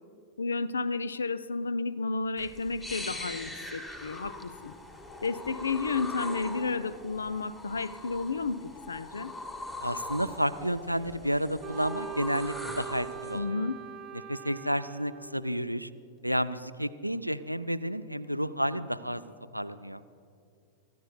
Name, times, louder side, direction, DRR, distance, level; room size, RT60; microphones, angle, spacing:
voice 1, 0.4-4.7 5.2-9.3 13.3-13.8, left 4 dB, 75° left, 17 dB, 0.4 m, -32 dB
sound 1, 2.4-13.4, left 2 dB, 20° left, 2.0 m, -41 dB
voice 2, 9.8-13.6 14.3-15.9 16.2-19.2 19.5-20.0, equal, 90° right, 13 dB, 0.4 m, -31 dB
Wind instrument woodwind instrument, 11.6-15.6, right 8 dB, 25° right, 1.0 m, -42 dB
29.0 x 14.0 x 2.3 m, 2.4 s
figure-of-eight pair, 90°, 0 cm